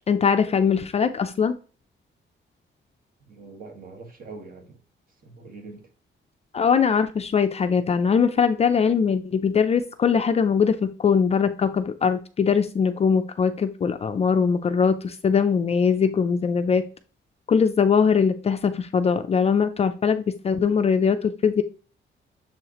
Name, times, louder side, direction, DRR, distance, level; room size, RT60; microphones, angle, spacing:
voice 1, 0.1-1.6 6.5-16.8 17.5-21.6, left 6 dB, 30° left, 0.4 m, -21 dB
voice 2, 3.3-4.8 5.2-5.8, right 3 dB, 45° right, 1.4 m, -43 dB
7.0 x 4.8 x 2.9 m
wide cardioid pair, 180°, 20 cm